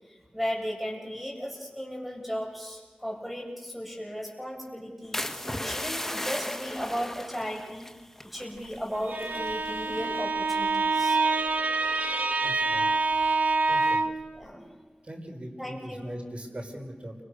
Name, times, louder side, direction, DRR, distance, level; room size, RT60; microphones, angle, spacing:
voice 1, 0.1-7.9 8.2-11.2 12.3-12.4 12.9-13.0 14.3-14.6 15.6-16.2, equal, 5° right, 0 dB, 7.9 m, -36 dB
sound 1, 5.1-8.9 9.1-9.5 10.0-10.3, left 1 dB, 10° left, 1.6 m, -36 dB
Bowed string instrument, 8.9-14.3, right 3 dB, 85° right, 1.8 m, -26 dB
voice 2, 12.4-13.1 13.7-14.0 15.0-17.2, equal, 45° right, 3 dB, 5.4 m, -40 dB
29.5 x 25.5 x 6.7 m, 1.5 s
wide cardioid pair, 70°, 3 cm